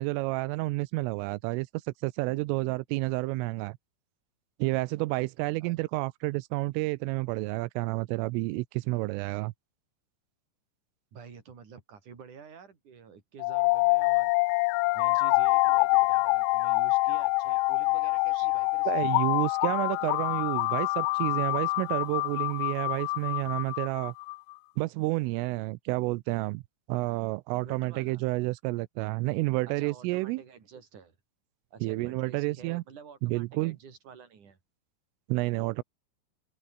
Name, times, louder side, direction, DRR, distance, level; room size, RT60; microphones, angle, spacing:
voice 1, 0.0-3.8 4.6-9.5 18.4-18.5 18.9-24.1 24.8-26.6 26.9-30.4 31.8-32.8 33.2-33.8 35.3-35.8, right 22 dB, 90° right, 3.3 m, -30 dB
voice 2, 11.1-14.3 14.9-18.9 27.6-28.2 29.7-31.2 31.7-34.6, right 6 dB, 40° right, 5.2 m, -49 dB
sound 1, 13.4-24.4, left 26 dB, 85° left, 3.1 m, -26 dB
open air
omnidirectional pair, 5.7 m